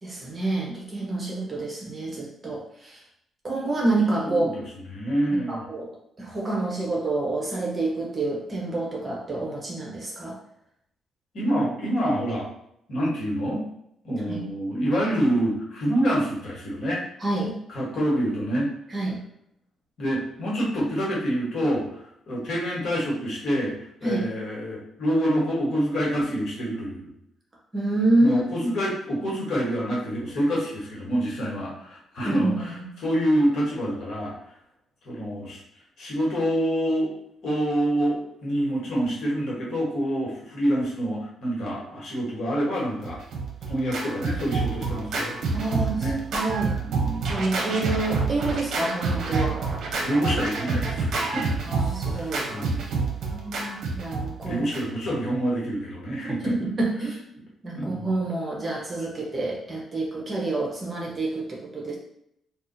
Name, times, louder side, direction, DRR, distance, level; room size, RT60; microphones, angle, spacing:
voice 1, 0.0-3.0 3.4-4.6 5.5-5.9 6.2-10.3 14.3-14.4 17.2-17.5 18.9-19.2 24.0-24.3 27.7-28.7 32.2-32.9 45.5-46.1 46.3-46.8 47.3-49.6 51.7-52.8 53.3-54.6 56.2-57.2 57.6-62.0, right 2 dB, 30° right, -2 dB, 0.9 m, -28 dB
voice 2, 4.9-5.6 11.3-12.5 12.9-13.6 14.0-17.0 17.7-18.7 20.0-21.9 22.3-23.8 24.0-27.1 28.2-34.3 35.0-35.6 36.0-37.1 37.4-43.2 43.7-46.2 46.8-47.4 50.0-51.6 52.1-53.1 54.5-56.5 57.7-58.1, equal, 60° left, -4 dB, 1.4 m, -27 dB
Scratching (performance technique), 43.0-55.1, right 3 dB, 65° right, 0.7 m, -28 dB
2.7 x 2.4 x 3.9 m, 0.75 s
cardioid pair, 95°, 0 cm